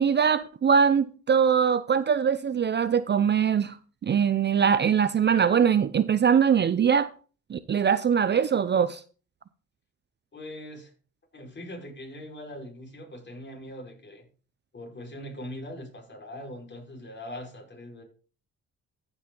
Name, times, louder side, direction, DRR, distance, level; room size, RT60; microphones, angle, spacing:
voice 1, 0.0-3.7 4.0-7.1 7.5-9.0, right 7 dB, 35° right, 0.6 m, -22 dB
voice 2, 10.3-10.9 11.3-14.3 14.7-18.0, left 1 dB, 35° left, 5.0 m, -41 dB
14.5 x 6.0 x 3.9 m
cardioid pair, 90°, 30 cm